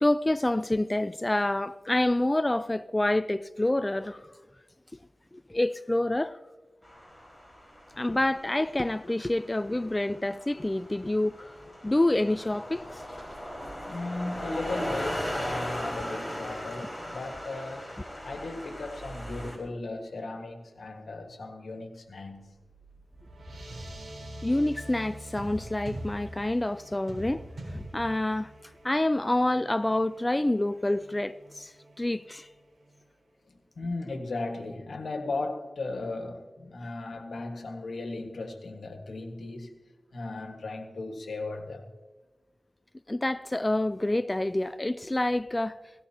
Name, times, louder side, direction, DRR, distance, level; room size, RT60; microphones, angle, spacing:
voice 1, 0.0-4.2 5.3-6.4 8.0-11.5 11.8-13.0 24.4-28.5 28.8-32.5 43.1-45.8, left 1 dB, 25° left, 0.3 m, -27 dB
sound 1, 6.8-19.6, equal, 5° right, 4.8 m, -38 dB
voice 2, 13.9-17.9 18.2-22.5 33.5-39.7 40.1-41.9, left 2 dB, 85° left, 1.6 m, -36 dB
sound 2, 22.5-33.0, right 1 dB, 70° right, 4.0 m, -44 dB
17.5 x 16.5 x 2.9 m
wide cardioid pair, 60°, 0 cm